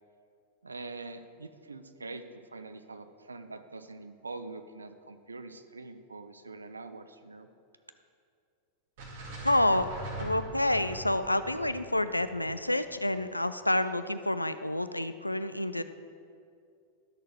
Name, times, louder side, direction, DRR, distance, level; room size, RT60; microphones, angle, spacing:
voice 1, 0.6-2.2 2.5-7.5, right 3 dB, 75° right, 10 dB, 0.5 m, -44 dB
sound 1, 9.0-13.2, right 1 dB, 50° right, 1.8 m, -42 dB
voice 2, 9.4-15.8, left 1 dB, 85° left, 12 dB, 0.3 m, -28 dB
12.0 x 6.5 x 4.5 m, 2.4 s
figure-of-eight pair, 90°, 0 cm